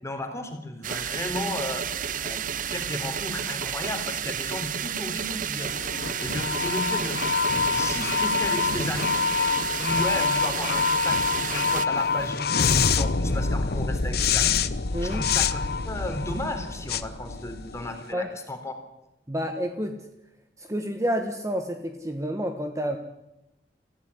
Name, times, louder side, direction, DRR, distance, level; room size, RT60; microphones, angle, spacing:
voice 1, 0.0-5.8 6.2-7.2 7.7-9.1 9.8-14.5 15.0-18.7, left 1 dB, 15° left, 5 dB, 3.6 m, -34 dB
sound 1, 0.8-11.9, right 9 dB, 50° right, 0.7 m, -31 dB
sound 2, 5.6-18.0, left 5 dB, 60° left, 0.9 m, -26 dB
voice 2, 14.9-15.2 18.1-18.3 19.3-20.0 20.6-23.0, equal, 20° right, 5 dB, 1.4 m, -29 dB
24.5 x 15.5 x 10.0 m, 0.93 s
head